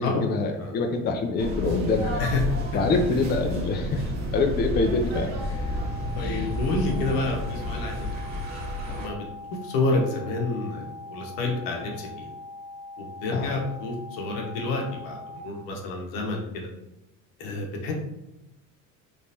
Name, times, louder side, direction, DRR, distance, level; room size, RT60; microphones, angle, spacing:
voice 1, 0.0-2.3 2.7-5.3 6.2-6.5 7.1-7.2 13.3-13.5, left 3 dB, 30° left, 4 dB, 0.4 m, -26 dB
sound 1, 1.4-9.1, left 1 dB, 45° right, 0.9 m, -31 dB
sound 2, 5.4-15.4, left 2 dB, 5° left, 1.1 m, -42 dB
voice 2, 6.1-8.1 8.8-9.2 9.6-12.3 13.0-16.7 17.4-17.9, left 2 dB, 75° left, 0 dB, 1.0 m, -29 dB
3.3 x 3.2 x 2.8 m, 0.92 s
supercardioid pair, 95°, 37 cm